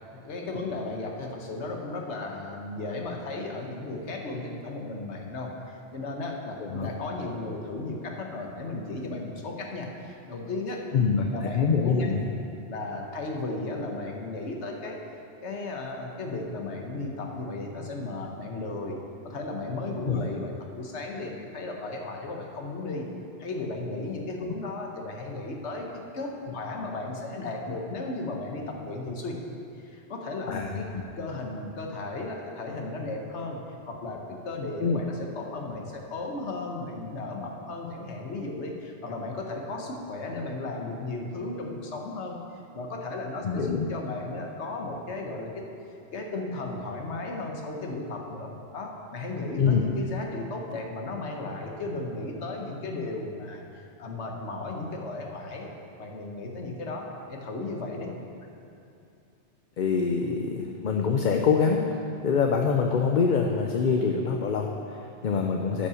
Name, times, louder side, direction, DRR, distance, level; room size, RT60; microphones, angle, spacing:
voice 1, 0.1-10.8 11.3-12.2 12.7-15.0 15.4-19.0 19.2-23.1 23.4-25.9 26.1-29.4 29.8-30.9 31.2-33.6 33.9-42.4 42.7-45.6 45.9-55.7 56.0-58.1, left 2 dB, 85° left, 1 dB, 1.4 m, -35 dB
voice 2, 10.9-12.2 20.1-20.2 30.5-31.0 34.8-35.0 43.4-43.9 49.6-49.8 59.8-61.8 62.2-65.9, left 5 dB, 55° left, 2 dB, 0.7 m, -25 dB
9.9 x 5.6 x 7.0 m, 2.6 s
omnidirectional pair, 1.1 m